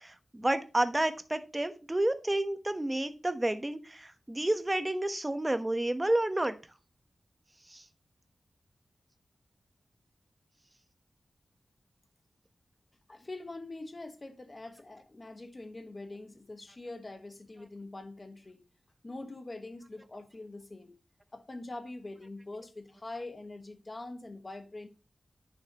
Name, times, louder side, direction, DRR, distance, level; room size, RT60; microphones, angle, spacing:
voice 1, 0.0-6.6 7.7-7.8, right 1 dB, 15° right, 1.1 m, -30 dB
voice 2, 13.1-18.6 19.0-20.9 21.3-24.9, left 2 dB, 30° left, 1.4 m, -44 dB
9.6 x 6.6 x 3.0 m
wide cardioid pair, 120°, 0 cm